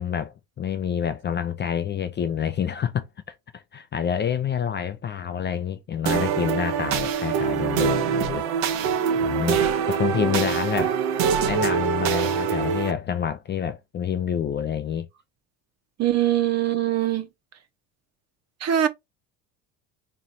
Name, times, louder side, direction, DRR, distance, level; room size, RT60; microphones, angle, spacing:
voice 1, 0.0-3.1 3.5-8.4 9.2-9.6 9.9-10.9 11.5-15.1, left 8 dB, 30° left, 0.5 m, -27 dB
sound 1, 6.1-12.9, right 7 dB, 90° right, 0.9 m, -24 dB
voice 2, 16.0-17.3 18.6-18.9, right 11 dB, 40° right, 0.9 m, -22 dB
3.1 x 2.7 x 4.1 m
supercardioid pair, 95°, 40 cm